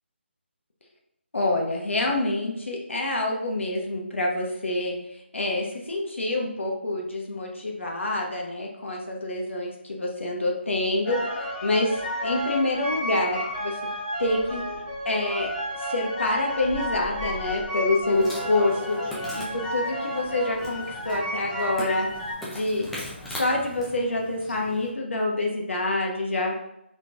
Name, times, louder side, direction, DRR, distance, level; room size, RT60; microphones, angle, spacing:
voice 1, 1.3-5.0 5.3-13.9 14.2-14.6 15.0-15.5 15.8-19.1 19.4-22.1 22.5-22.9 23.3-26.6, left 2 dB, 75° left, -1 dB, 0.9 m, -27 dB
sound 1, 11.0-22.3, equal, 20° left, 0.7 m, -32 dB
Insect, 18.1-24.9, left 1 dB, 5° left, 0.3 m, -40 dB
3.7 x 3.2 x 2.5 m, 0.82 s
figure-of-eight pair, 155°, 7 cm